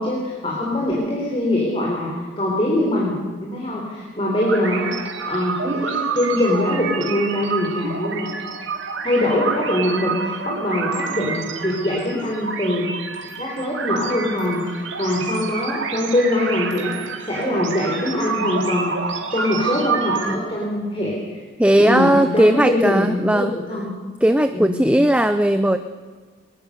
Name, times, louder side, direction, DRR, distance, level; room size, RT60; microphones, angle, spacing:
voice 1, 0.0-8.3 9.0-12.9 13.4-16.9 17.3-21.4 21.8-23.9 24.5-24.9, left 1 dB, 25° left, -3 dB, 3.9 m, -23 dB
sound 1, 4.4-20.4, right 5 dB, 70° right, 2.3 m, -28 dB
voice 2, 21.6-23.5 24.2-25.8, right 1 dB, 5° right, 9 dB, 0.5 m, -17 dB
21.0 x 20.5 x 6.8 m, 1.5 s
head